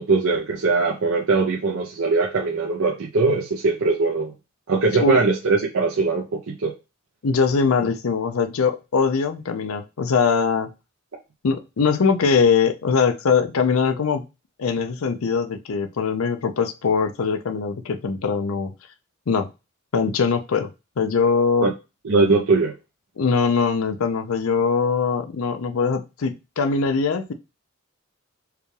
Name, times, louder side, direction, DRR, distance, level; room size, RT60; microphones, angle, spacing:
voice 1, 0.0-4.3 4.7-6.7 21.6-21.7 22.0-22.7, right 3 dB, 80° right, -2 dB, 0.7 m, -21 dB
voice 2, 7.2-10.7 11.4-14.2 14.6-18.7 19.3-19.5 19.9-20.7 21.0-21.7 23.2-27.3, left 5 dB, 90° left, 9 dB, 0.5 m, -21 dB
4.7 x 2.3 x 3.2 m, 0.28 s
head